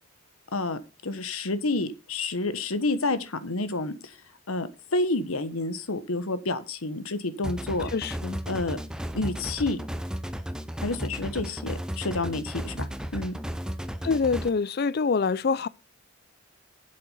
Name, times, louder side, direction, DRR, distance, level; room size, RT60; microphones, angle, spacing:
voice 1, 0.5-4.2 4.5-7.9 8.5-8.8 9.1-9.8 10.8-12.9 13.1-13.4, left 2 dB, 80° left, 1.2 m, -29 dB
sound 1, 7.4-14.5, equal, 5° right, 0.5 m, -34 dB
voice 2, 7.9-8.4 14.0-15.7, left 5 dB, 45° left, 0.4 m, -25 dB
7.8 x 7.6 x 5.5 m
head